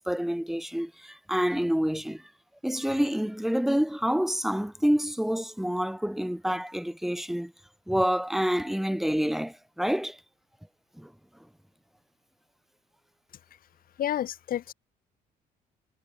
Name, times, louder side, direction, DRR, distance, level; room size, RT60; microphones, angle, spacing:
voice 1, 0.1-2.2 2.6-7.5 7.9-10.2 11.0-11.1, equal, ahead, 1.4 m, -27 dB
voice 2, 14.0-14.7, left 11 dB, 60° left, 3.1 m, -30 dB
cardioid pair, 110°, 17 cm